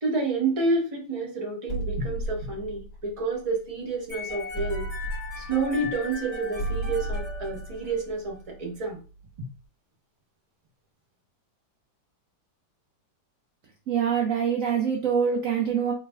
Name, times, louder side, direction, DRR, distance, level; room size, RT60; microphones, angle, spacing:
voice 1, 0.0-4.8 5.4-9.0 9.4-9.5, right 3 dB, 25° right, -1 dB, 0.9 m, -29 dB
sound 1, 1.7-4.0 4.5-9.2, right 2 dB, 35° left, 2.5 m, -34 dB
sound 2, 4.1-8.2, left 3 dB, 45° right, 3.0 m, -38 dB
voice 2, 13.9-15.9, right 7 dB, 70° right, 2 dB, 0.8 m, -24 dB
4.5 x 4.3 x 2.3 m, 0.35 s
omnidirectional pair, 2.1 m